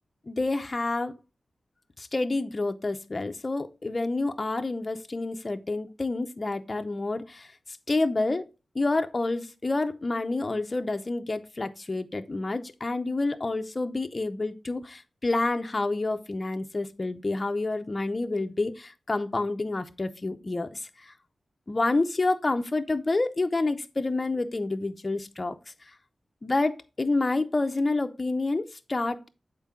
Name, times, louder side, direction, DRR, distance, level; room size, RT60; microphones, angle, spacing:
voice 1, 0.3-1.2 2.0-7.5 7.9-8.5 8.7-21.1 21.7-25.6 25.9-26.0 26.4-29.3, left 2 dB, 35° left, 0.6 m, -28 dB
7.0 x 4.5 x 3.7 m
wide cardioid pair, 80°, 0 cm